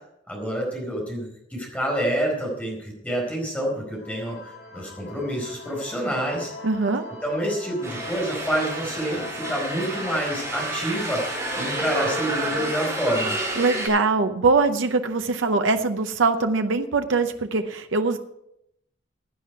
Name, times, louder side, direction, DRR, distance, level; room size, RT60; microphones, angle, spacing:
voice 1, 0.3-6.5 7.2-13.3, right 1 dB, 5° left, -1 dB, 4.5 m, -28 dB
sound 1, 3.9-14.3, left 3 dB, 60° left, 3.2 m, -42 dB
voice 2, 6.6-7.0 13.6-18.2, right 3 dB, 85° right, 7 dB, 0.7 m, -22 dB
sound 2, 7.8-13.9, right 1 dB, 15° right, 5.3 m, -29 dB
16.5 x 9.4 x 4.6 m, 0.80 s
head